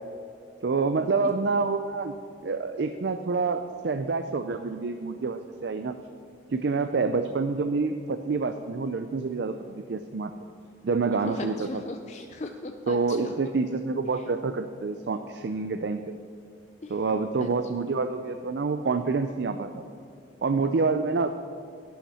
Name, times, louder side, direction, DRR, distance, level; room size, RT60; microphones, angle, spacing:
voice 1, 0.6-2.1 2.4-5.9 6.5-10.3 10.8-11.8 12.9-16.0 16.9-19.8 20.4-21.4, right 4 dB, 60° right, 9 dB, 0.4 m, -27 dB
voice 2, 11.1-13.5 16.8-17.0 17.4-17.5 17.8-17.9, left 2 dB, 35° left, 6 dB, 0.4 m, -38 dB
11.5 x 11.0 x 4.2 m, 2.3 s
head